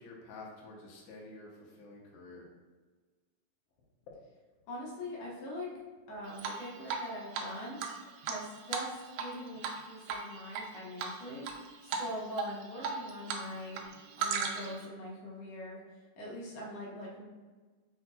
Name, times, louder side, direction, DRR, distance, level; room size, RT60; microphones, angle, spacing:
voice 1, 0.0-2.5, left 2 dB, 85° left, -3 dB, 1.3 m, -49 dB
voice 2, 4.7-5.7 6.1-7.8 8.2-13.8 14.2-15.8 16.2-17.2, left 1 dB, 65° left, -5 dB, 1.7 m, -42 dB
Drip, 6.4-7.1 7.3-7.4 7.8-9.3 9.6-9.8 10.1-10.6 11.0-11.5 11.9-12.1 12.4-13.4 13.7-14.8, right 6 dB, 90° right, 2.3 m, -35 dB
5.1 x 4.3 x 2.3 m, 1.3 s
omnidirectional pair, 3.9 m